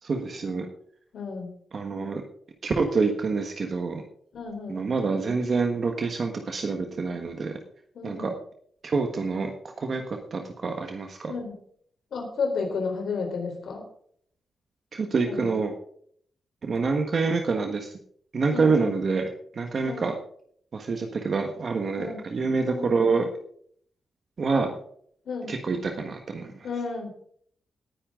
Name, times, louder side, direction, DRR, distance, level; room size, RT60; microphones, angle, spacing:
voice 1, 0.0-0.7 1.7-2.2 2.6-4.0 4.7-7.6 8.0-8.3 8.8-9.5 9.8-11.3 14.9-15.7 16.6-17.9 18.3-20.1 20.7-23.3 24.4-24.8 25.5-26.5, right 4 dB, 40° right, 4 dB, 1.4 m, -27 dB
voice 2, 1.1-1.5 4.3-4.8 8.0-8.4 11.3-11.6 12.1-13.8 15.3-15.6 18.5-18.9 19.8-20.1 22.0-22.2 22.7-22.9 25.3-25.5 26.6-27.1, left 4 dB, 65° left, 3 dB, 4.1 m, -32 dB
18.5 x 10.0 x 3.8 m, 0.62 s
wide cardioid pair, 160°, 0 cm